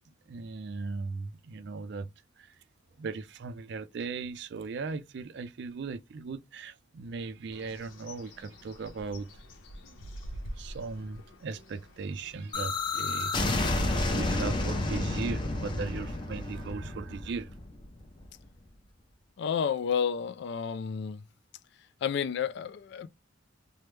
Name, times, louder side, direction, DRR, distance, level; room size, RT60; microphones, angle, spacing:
voice 1, 0.3-2.1 2.4-2.6 3.0-9.4 10.5-13.8 14.1-17.6, right 4 dB, 60° right, 0.4 m, -38 dB
Bird, 7.5-14.2, equal, 85° left, 0.8 m, -47 dB
Bomb Explosion, 12.5-18.3, left 2 dB, 25° left, 0.6 m, -30 dB
voice 2, 19.4-21.2 22.0-23.1, left 7 dB, 60° left, 0.3 m, -30 dB
3.3 x 2.1 x 3.1 m
head